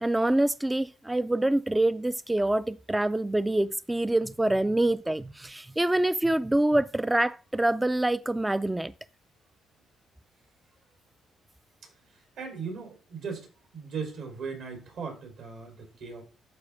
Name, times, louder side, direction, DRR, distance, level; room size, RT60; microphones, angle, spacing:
voice 1, 0.0-8.9, right 1 dB, 10° right, 0.3 m, -26 dB
voice 2, 11.8-13.5 13.7-16.2, right 5 dB, 80° right, 3.7 m, -38 dB
11.5 x 4.4 x 3.5 m
cardioid pair, 90°, 0 cm